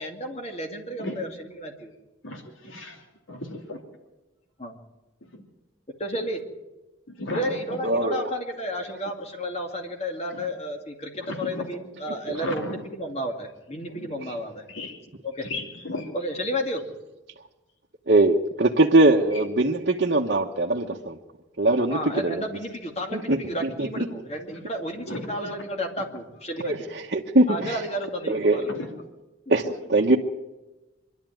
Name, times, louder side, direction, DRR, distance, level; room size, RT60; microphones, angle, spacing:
voice 1, 0.0-1.9 4.6-4.8 6.0-6.4 7.3-14.6 15.2-15.5 16.1-16.9 21.9-26.9 27.5-28.7 29.6-29.7, equal, 30° left, 3 dB, 2.4 m, -32 dB
voice 2, 2.2-3.4 3.7-3.8 5.3-5.4 7.2-7.8 10.3-10.4 11.3-11.7 12.3-12.8 13.9-14.1 14.7-15.0 15.4-16.1 19.3-19.4 24.5-24.6 25.1-25.3 28.7-28.9, left 2 dB, 80° left, 3 dB, 2.9 m, -35 dB
voice 3, 7.8-8.3 12.3-12.4 18.1-21.2 21.6-22.4 23.1-24.1 26.6-27.8 28.3-28.6 29.5-30.2, right 2 dB, 50° right, -1 dB, 1.2 m, -22 dB
24.5 x 12.0 x 9.2 m, 1.1 s
head